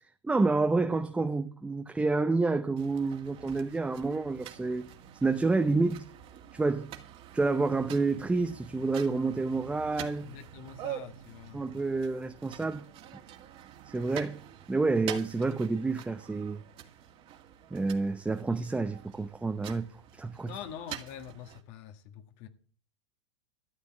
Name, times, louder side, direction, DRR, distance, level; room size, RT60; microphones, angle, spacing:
voice 1, 0.2-4.9 5.2-6.0 6.5-6.9 7.3-10.3 11.5-12.8 13.9-14.4 14.7-16.6 17.7-19.9 20.2-20.5, right 3 dB, 10° right, 0.8 m, -29 dB
sound 1, 2.8-21.6, right 11 dB, 40° right, 2.0 m, -46 dB
voice 2, 10.2-11.7 20.4-22.5, left 9 dB, 50° left, 1.6 m, -45 dB
13.5 x 7.4 x 7.4 m
hypercardioid pair, 110°, 15 cm